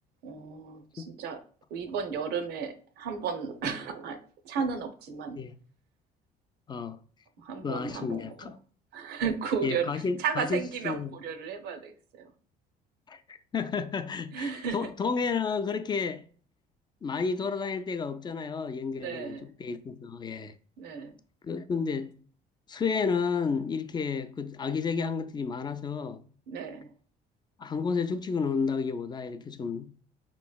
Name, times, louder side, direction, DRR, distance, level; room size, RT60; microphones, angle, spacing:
voice 1, 0.2-1.4 1.7-4.2 4.4-5.4 7.4-8.5 8.9-12.3 14.3-14.9 18.9-19.5 20.8-21.2 26.5-26.9, right 6 dB, 75° right, 0.7 m, -34 dB
voice 2, 6.7-7.0 7.6-8.5 9.6-11.1 13.1-16.2 17.0-19.3 19.6-20.5 21.4-22.1 22.7-26.2 27.6-29.9, left 5 dB, 25° left, 0.4 m, -31 dB
4.2 x 3.0 x 2.3 m
cardioid pair, 110°, 17 cm